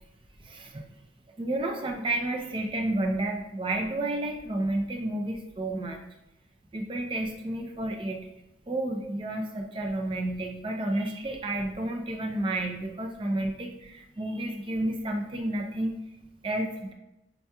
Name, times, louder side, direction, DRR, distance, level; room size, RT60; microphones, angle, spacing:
voice 1, 0.4-0.8 1.4-6.0 6.7-8.2 8.7-16.0 16.4-16.9, right 1 dB, 25° right, 2 dB, 0.4 m, -31 dB
6.4 x 2.8 x 2.3 m, 0.88 s
head